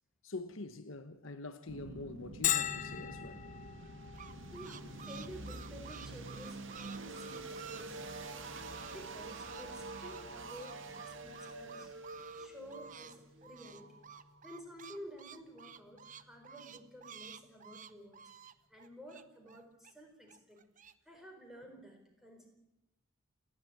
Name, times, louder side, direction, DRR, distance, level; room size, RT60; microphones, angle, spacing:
voice 1, 0.2-3.4, left 2 dB, 65° left, 1.2 m, -45 dB
sound 1, 1.7-14.5, right 2 dB, 60° right, 2.1 m, -47 dB
Bell, 2.4-17.9, left 10 dB, 35° left, 0.8 m, -44 dB
sound 2, 3.8-9.0 9.2-13.2 13.4-19.9 20.3-20.9, right 8 dB, 35° right, 0.9 m, -52 dB
voice 2, 4.5-8.0 8.9-11.9 12.4-14.0 14.4-18.2 18.7-20.6 21.0-22.5, equal, ahead, 4.6 m, -52 dB
29.0 x 11.5 x 8.8 m
head